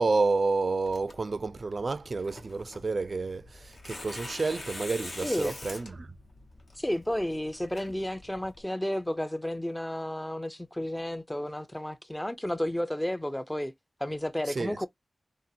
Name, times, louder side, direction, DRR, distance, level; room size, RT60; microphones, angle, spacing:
voice 1, 0.0-6.1 14.5-14.9, right 3 dB, 60° right, 0.3 m, -30 dB
Tearing, 0.9-8.6, left 2 dB, 65° left, 1.1 m, -45 dB
voice 2, 5.2-5.6 6.8-13.7 14.0-14.9, left 1 dB, 15° left, 0.5 m, -32 dB
2.8 x 2.3 x 2.5 m
cardioid pair, 45°, 0 cm